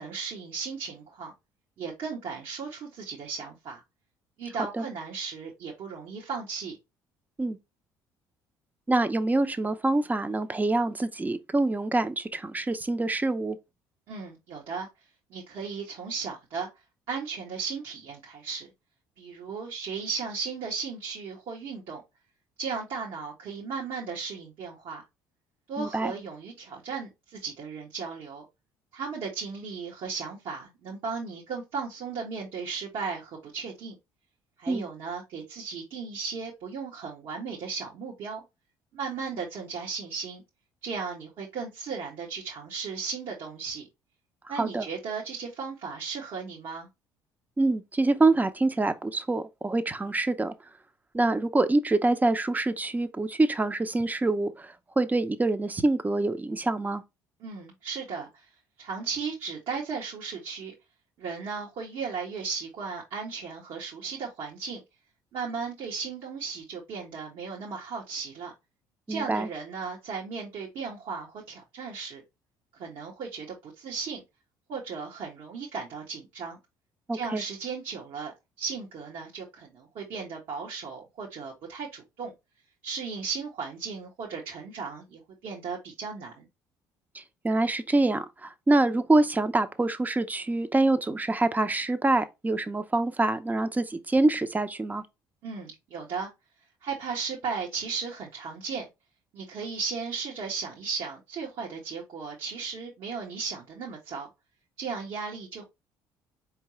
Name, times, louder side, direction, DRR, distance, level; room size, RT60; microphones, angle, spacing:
voice 1, 0.0-1.3 1.8-3.8 4.4-6.8 14.1-14.9 15.3-16.7 17.1-18.7 19.2-22.0 22.6-25.0 25.7-28.4 28.9-33.9 34.6-38.4 38.9-40.4 40.8-43.8 44.5-46.9 57.4-58.4 58.8-60.7 61.2-64.8 65.3-68.5 69.1-72.2 72.7-74.2 74.7-76.6 77.1-78.3 78.6-82.3 82.8-86.5 95.4-96.3 96.8-98.9 99.3-104.3 104.8-105.6, right 5 dB, 60° right, 1.6 m, -36 dB
voice 2, 8.9-13.6 25.8-26.1 34.7-34.9 44.6-44.9 47.6-50.5 51.1-57.0 69.1-69.5 77.1-77.4 87.1-95.0, right 2 dB, 15° right, 0.8 m, -25 dB
4.6 x 3.4 x 3.1 m
hypercardioid pair, 60°, 10 cm